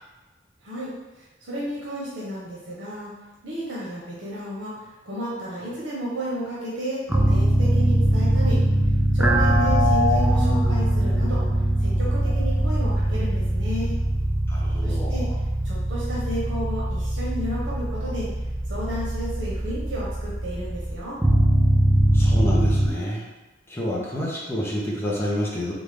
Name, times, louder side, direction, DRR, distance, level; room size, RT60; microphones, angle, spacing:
voice 1, 0.6-3.1 3.4-8.6 9.1-11.4 11.8-14.0 14.8-15.3 15.6-18.3 18.7-21.2, equal, 80° right, -6 dB, 0.9 m, -32 dB
sound 1, 7.1-22.9, right 1 dB, 5° right, 0.3 m, -22 dB
voice 2, 14.5-15.3 22.1-23.2 23.7-25.7, equal, 15° left, -5 dB, 0.8 m, -29 dB
3.8 x 3.6 x 3.4 m, 1.1 s
head